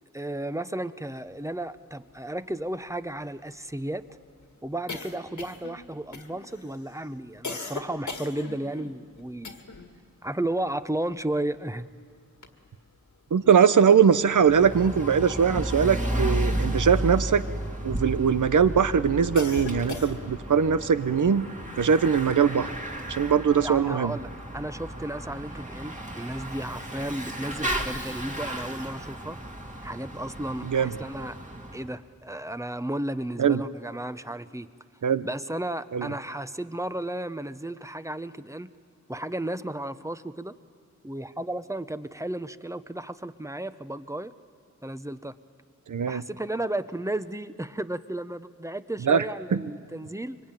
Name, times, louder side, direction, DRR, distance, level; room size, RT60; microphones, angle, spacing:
voice 1, 0.1-4.0 4.6-9.6 10.2-11.9 23.6-29.4 29.8-31.4 31.7-34.7 35.2-38.7 39.1-40.5 41.0-44.3 44.8-45.3 46.1-50.4, right 1 dB, 10° right, 12 dB, 0.7 m, -33 dB
sound 1, 1.8-1.9 2.1-2.2 2.5-10.0 10.3-11.8 12.2-13.1 13.9-18.3 18.8-20.5, left 4 dB, 75° left, 1.9 m, -40 dB
voice 2, 13.3-17.4 17.8-21.5 21.8-22.7 23.1-24.1 30.6-30.9 33.4-33.6 35.0-35.3 35.9-36.1 45.9-46.2 49.1-49.2 49.5-49.6, right 7 dB, 90° right, 13 dB, 0.8 m, -21 dB
Bicycle / Mechanisms, 14.3-31.9, right 1 dB, 25° right, 2.2 m, -33 dB
25.0 x 24.0 x 9.1 m, 2.1 s
wide cardioid pair, 90°, 30 cm